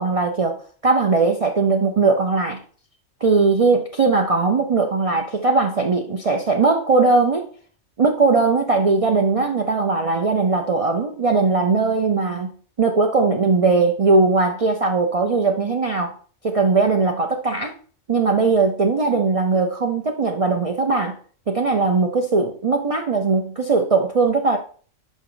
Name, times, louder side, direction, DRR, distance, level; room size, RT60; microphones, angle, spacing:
voice 1, 0.0-2.6 3.2-7.5 8.0-12.5 12.8-16.1 16.4-17.7 18.1-21.2 21.5-24.6, right 4 dB, 50° right, 2 dB, 0.4 m, -19 dB
5.7 x 4.5 x 3.8 m, 0.43 s
omnidirectional pair, 1.3 m